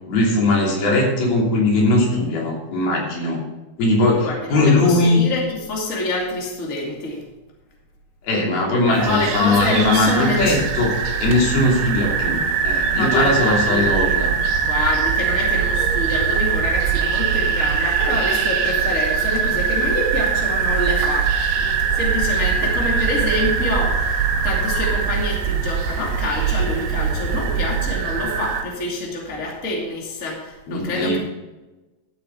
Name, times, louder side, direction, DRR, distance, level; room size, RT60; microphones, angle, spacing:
voice 1, 0.1-3.4 3.8-5.3 8.2-14.3 30.7-31.2, left 2 dB, 75° left, -2 dB, 4.9 m, -19 dB
voice 2, 4.1-7.2 8.8-10.6 12.7-13.9 14.6-21.3 21.6-31.2, left 2 dB, 25° left, -2 dB, 2.4 m, -26 dB
sound 1, 8.9-28.6, right 6 dB, 90° right, 3.2 m, -22 dB
13.0 x 8.4 x 4.7 m, 1.1 s
omnidirectional pair, 4.4 m